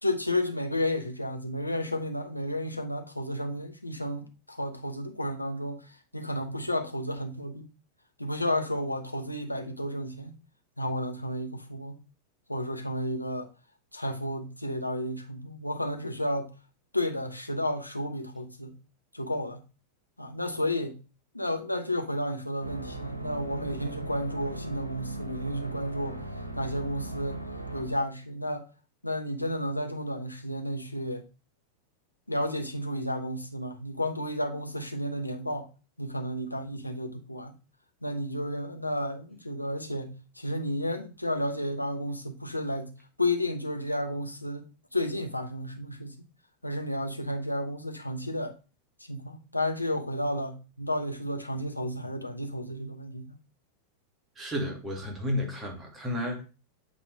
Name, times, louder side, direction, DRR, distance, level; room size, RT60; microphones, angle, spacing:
voice 1, 0.0-7.7 8.2-10.3 10.8-12.0 12.5-13.5 13.9-16.5 16.9-18.7 19.1-19.6 20.2-21.0 21.3-26.2 26.5-27.4 27.7-28.7 29.0-31.3 32.3-35.7 36.0-37.5 38.0-44.7 44.9-46.2 46.6-48.5 49.0-53.3, left 1 dB, 85° left, 1.0 m, -32 dB
sound 1, 22.6-28.1, right 2 dB, 85° right, 1.1 m, -38 dB
voice 2, 54.4-56.4, left 1 dB, 15° right, 2.2 m, -32 dB
8.3 x 3.6 x 4.8 m
figure-of-eight pair, 90°, 0 cm